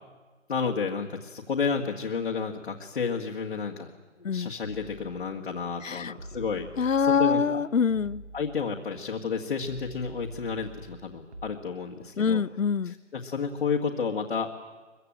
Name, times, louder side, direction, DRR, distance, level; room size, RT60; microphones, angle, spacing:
voice 1, 0.5-3.9 4.2-6.7 7.0-7.6 8.3-12.4 12.8-14.6, left 5 dB, 50° left, 0 dB, 2.0 m, -31 dB
sound 1, 4.6-5.5 6.2-7.5 7.9-9.0 9.6-11.5, right 2 dB, 55° right, 3.0 m, -45 dB
voice 2, 5.8-6.1 6.8-8.2 12.2-13.0, left 6 dB, 75° left, 20 dB, 0.9 m, -25 dB
23.5 x 23.0 x 9.0 m, 1.3 s
figure-of-eight pair, 160°, 39 cm